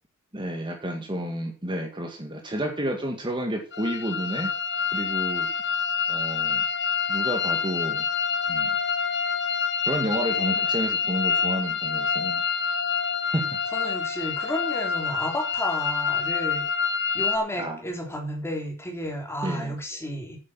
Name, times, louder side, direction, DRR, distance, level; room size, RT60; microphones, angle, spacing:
voice 1, 0.3-4.5 4.9-5.5 6.1-6.6 7.1-8.1 8.5-8.8 9.9-12.4 13.3-13.6 17.6-17.8 19.4-19.8, right 1 dB, 20° right, 3 dB, 2.0 m, -30 dB
sound 1, 3.7-17.4, left 6 dB, 55° left, 1.4 m, -27 dB
voice 2, 13.7-16.6 17.1-20.4, equal, 10° left, 2 dB, 3.4 m, -32 dB
9.4 x 9.3 x 6.1 m, 0.34 s
head